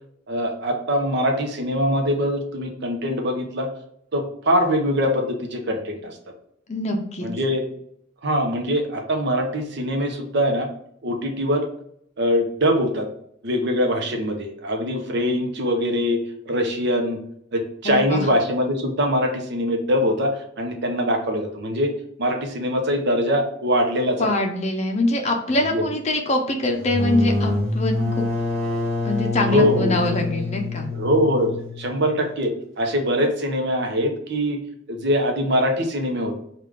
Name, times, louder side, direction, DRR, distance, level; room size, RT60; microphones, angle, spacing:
voice 1, 0.3-3.7 4.1-6.2 7.2-7.6 8.2-10.7 11.0-11.7 12.2-13.1 13.4-16.2 16.5-17.2 17.5-21.9 22.2-24.3 25.6-25.8 29.5-29.9 30.9-32.5 32.8-34.6 34.9-36.4, equal, 60° right, 3 dB, 0.7 m, -23 dB
voice 2, 6.7-7.3 17.8-18.3 24.2-28.2 29.0-30.9, left 1 dB, 35° left, 2 dB, 0.6 m, -23 dB
sound 1, 26.8-32.3, left 2 dB, 80° right, 1.0 m, -26 dB
3.6 x 2.4 x 3.2 m, 0.69 s
head